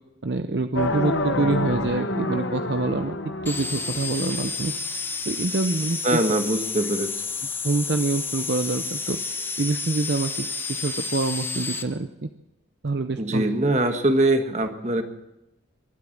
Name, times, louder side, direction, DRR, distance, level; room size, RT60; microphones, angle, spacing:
voice 1, 0.2-3.2 3.4-4.7 5.3-6.2 7.6-9.2 9.6-12.3 12.8-13.5, right 3 dB, 60° right, 8 dB, 0.7 m, -26 dB
sound 1, 0.8-4.8, left 1 dB, 75° left, 1.2 m, -28 dB
sound 2, 3.5-11.8, left 4 dB, 10° left, 0.7 m, -31 dB
voice 2, 6.0-7.1 13.2-15.0, right 1 dB, 35° right, 6 dB, 1.4 m, -22 dB
23.5 x 8.4 x 7.2 m, 0.91 s
head